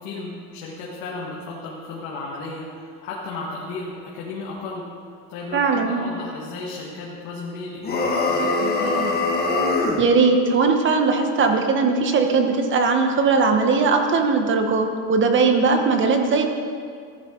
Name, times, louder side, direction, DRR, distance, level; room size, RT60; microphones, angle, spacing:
voice 1, 0.0-4.9 5.3-9.2, left 3 dB, 85° left, -4 dB, 1.8 m, -34 dB
voice 2, 5.5-6.0 10.0-16.5, right 4 dB, 35° right, 5 dB, 1.2 m, -19 dB
sound 1, 7.8-10.0, left 2 dB, 25° left, 1.5 m, -22 dB
15.0 x 10.5 x 3.9 m, 2.2 s
cardioid pair, 145°, 36 cm